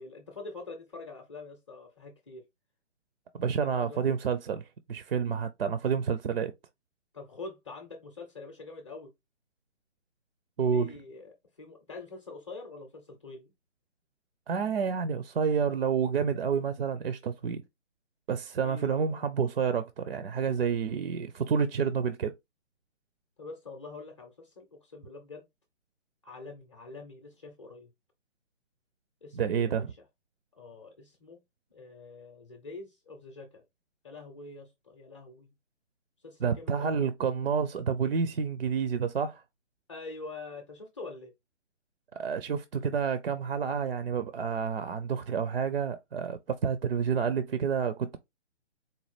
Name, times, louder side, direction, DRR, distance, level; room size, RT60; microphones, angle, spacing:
voice 1, 0.0-2.5 3.4-4.0 7.1-9.1 10.7-13.5 18.6-19.3 23.4-25.5 26.2-27.9 29.2-29.8 30.6-31.4 31.7-33.6 34.0-35.5 36.2-37.1 39.9-41.3, left 3 dB, 25° left, 0.6 m, -45 dB
voice 2, 3.3-6.5 10.6-10.9 14.5-17.6 18.3-22.3 29.3-29.9 36.4-39.4 42.2-48.2, right 6 dB, 55° right, 0.4 m, -29 dB
4.1 x 2.2 x 3.1 m
hypercardioid pair, 155°, 36 cm